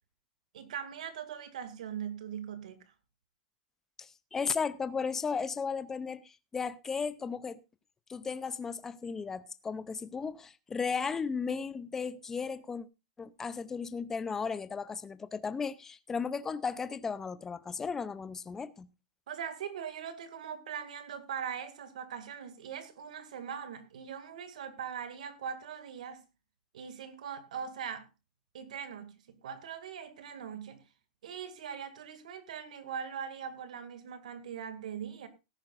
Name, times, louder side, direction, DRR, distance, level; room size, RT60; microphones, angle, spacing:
voice 1, 0.5-2.8 19.3-26.2 26.7-28.1 28.5-30.8 31.2-35.3, right 8 dB, 90° right, 2.1 m, -41 dB
voice 2, 4.0-7.6 8.1-12.9 13.2-18.9, left 5 dB, 10° left, 0.6 m, -35 dB
18.0 x 10.5 x 2.5 m
supercardioid pair, 165°, 4 cm